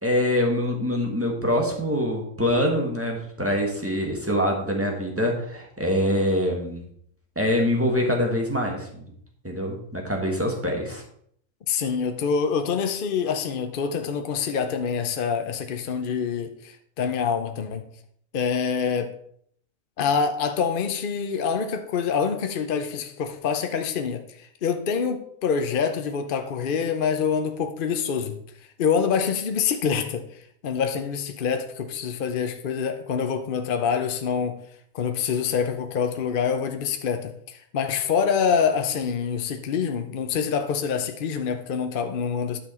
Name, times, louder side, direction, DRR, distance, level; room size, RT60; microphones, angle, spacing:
voice 1, 0.0-6.9 7.3-9.0 9.4-11.0, left 1 dB, 10° right, 1.6 m, -24 dB
voice 2, 11.7-17.8 18.3-19.1 20.0-28.4 28.8-30.3 30.6-34.6 34.9-42.6, left 6 dB, 50° left, 0.7 m, -26 dB
10.5 x 5.9 x 4.4 m
omnidirectional pair, 1.4 m